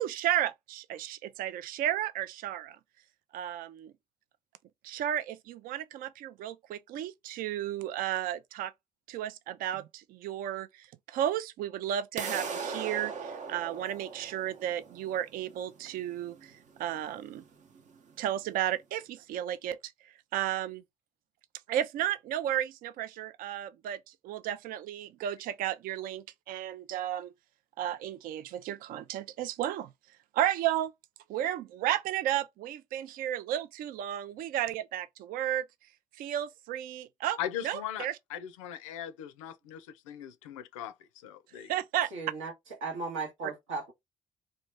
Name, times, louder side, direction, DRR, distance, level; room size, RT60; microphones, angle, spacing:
voice 1, 0.0-2.8 3.3-3.9 4.8-8.7 9.1-17.4 18.2-19.8 20.0-20.8 21.7-27.3 27.8-29.9 30.3-30.9 31.3-35.6 36.2-37.4 37.6-38.2 41.7-42.1, right 11 dB, 65° right, 0.4 m, -33 dB
sound 1, 12.2-18.1, right 5 dB, 50° right, 0.8 m, -40 dB
voice 2, 37.4-41.7, left 10 dB, 90° left, 0.4 m, -39 dB
voice 3, 42.1-42.5 42.8-43.9, right 4 dB, 90° right, 1.3 m, -36 dB
3.0 x 2.7 x 3.3 m
hypercardioid pair, 50°, 16 cm